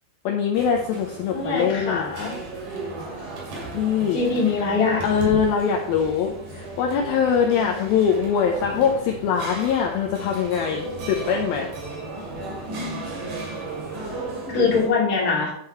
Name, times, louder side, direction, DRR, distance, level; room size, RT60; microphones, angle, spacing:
voice 1, 0.3-2.1 3.7-4.2 5.0-11.7, left 7 dB, 85° left, 1 dB, 2.1 m, -23 dB
sound 1, 0.5-14.9, right 2 dB, 50° right, 3.4 m, -34 dB
voice 2, 1.3-2.4 4.1-5.0 14.5-15.5, left 4 dB, 30° left, -4 dB, 1.8 m, -22 dB
11.0 x 5.7 x 4.3 m, 0.71 s
omnidirectional pair, 5.2 m